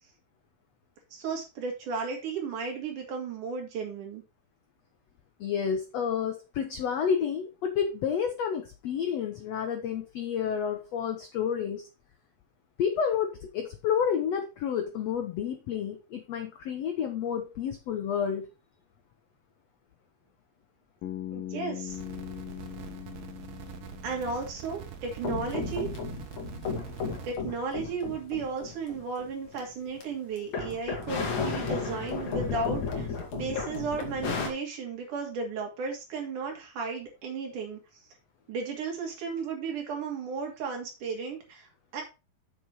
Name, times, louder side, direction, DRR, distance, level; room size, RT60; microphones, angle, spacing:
voice 1, 1.1-4.2 21.3-22.0 24.0-25.9 27.2-37.8 38.5-41.7 41.9-42.0, right 4 dB, 60° right, 1 dB, 3.9 m, -34 dB
voice 2, 5.4-11.8 12.8-18.5, left 7 dB, 85° left, 6 dB, 1.4 m, -30 dB
Bass guitar, 21.0-25.0, left 12 dB, 70° left, 2.8 m, -41 dB
sound 1, 21.9-27.3, right 8 dB, 75° right, 3.1 m, -44 dB
sound 2, 25.2-30.0 30.4-34.5, left 4 dB, 55° left, 3.1 m, -33 dB
7.3 x 7.2 x 4.6 m, 0.28 s
omnidirectional pair, 4.3 m